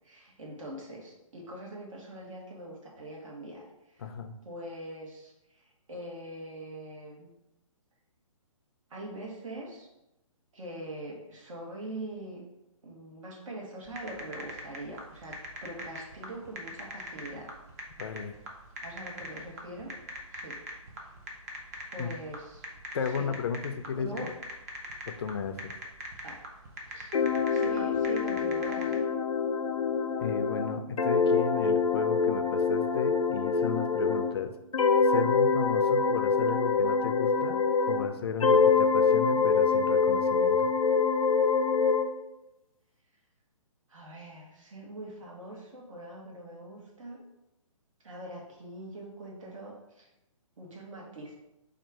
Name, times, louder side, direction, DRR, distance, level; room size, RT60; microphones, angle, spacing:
voice 1, 0.0-3.7 3.9-4.1 4.4-5.3 5.6-7.3 8.9-9.9 10.5-12.4 12.8-15.3 15.6-17.5 18.8-19.9 20.3-20.6 21.9-22.7 23.1-23.3 23.9-24.3 26.2-26.4 26.8-27.1 27.5-29.0 43.9-47.2 48.0-50.1 50.6-51.3, right 1 dB, 70° right, -2 dB, 1.4 m, -42 dB
voice 2, 4.0-4.3 18.0-18.4 22.0-22.1 22.9-24.3 25.1-25.7 30.2-34.5 35.0-37.6 37.9-40.7, left 6 dB, 45° left, 8 dB, 0.4 m, -34 dB
sound 1, 13.9-28.9, right 1 dB, 30° right, 0.6 m, -42 dB
sound 2, 27.1-34.3 34.7-38.1 38.4-42.1, left 5 dB, 90° left, 0.6 m, -25 dB
4.3 x 2.4 x 4.6 m, 0.93 s
hypercardioid pair, 160°, 18 cm